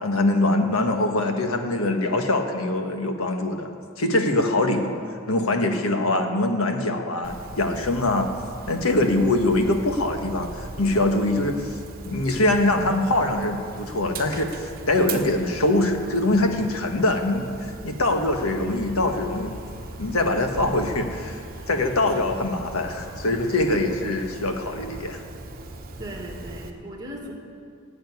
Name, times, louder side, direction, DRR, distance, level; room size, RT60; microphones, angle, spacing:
voice 1, 0.0-3.7 4.0-5.0 5.3-8.3 8.7-11.7 12.0-19.6 20.0-25.2, left 2 dB, 85° left, 4 dB, 1.4 m, -23 dB
Dog, 7.2-26.7, right 2 dB, 45° right, 1.2 m, -39 dB
sound 1, 18.0-25.1, equal, 40° left, 5.0 m, -46 dB
voice 2, 26.0-27.3, right 1 dB, 20° right, 0 dB, 2.3 m, -37 dB
15.5 x 7.9 x 9.5 m, 2.3 s
head